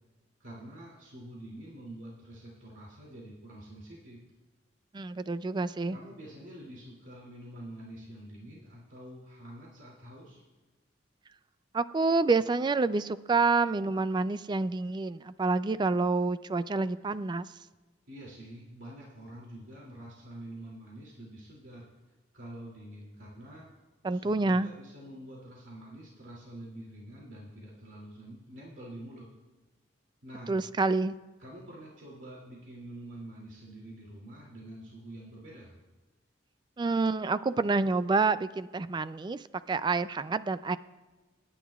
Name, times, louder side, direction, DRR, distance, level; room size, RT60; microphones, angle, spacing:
voice 1, 0.4-4.2 5.9-10.4 18.1-21.9 22.3-23.7 24.1-29.3 30.2-30.6 31.4-35.8, right 1 dB, 90° right, -4 dB, 2.7 m, -46 dB
voice 2, 4.9-6.0 11.7-17.5 24.0-24.7 30.5-31.1 36.8-40.8, right 3 dB, 25° right, 14 dB, 0.3 m, -28 dB
27.0 x 10.0 x 2.4 m, 1.2 s
head